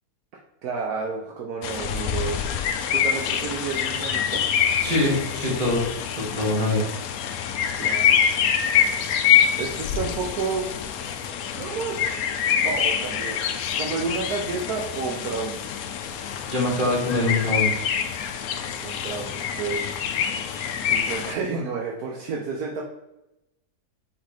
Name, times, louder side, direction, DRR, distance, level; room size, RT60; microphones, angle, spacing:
voice 1, 0.6-2.5 2.9-4.4 7.8-8.2 9.6-10.7 11.5-12.0 12.6-13.4 13.7-15.6 18.8-20.0 20.8-22.9, right 4 dB, 75° right, -1 dB, 1.2 m, -30 dB
sound 1, 1.6-21.3, left 8 dB, 70° left, 1.0 m, -25 dB
voice 2, 4.8-5.8 6.3-6.9 16.5-17.7, left 2 dB, 30° right, -5 dB, 2.1 m, -23 dB
5.9 x 4.8 x 3.3 m, 0.91 s
omnidirectional pair, 1.7 m